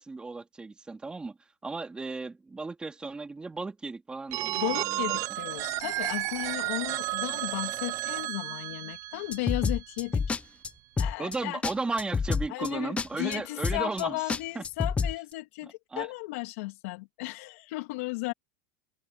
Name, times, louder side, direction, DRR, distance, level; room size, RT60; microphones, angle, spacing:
voice 1, 0.0-1.4 1.6-5.2 11.2-14.6 15.9-16.1, right 3 dB, 10° right, 2.8 m, -35 dB
Telephone, 4.3-10.1, right 17 dB, 45° right, 0.9 m, -33 dB
voice 2, 4.6-10.4 11.0-11.6 12.5-18.3, left 23 dB, 70° left, 2.2 m, -35 dB
sound 1, 9.3-10.4 10.6-10.7 11.0-11.4 11.6-11.7 12.0-12.7 13.0-13.1 13.3-13.4 13.6-14.0 14.3-15.1, left 5 dB, 15° left, 0.9 m, -28 dB
supercardioid pair, 125°, 8 cm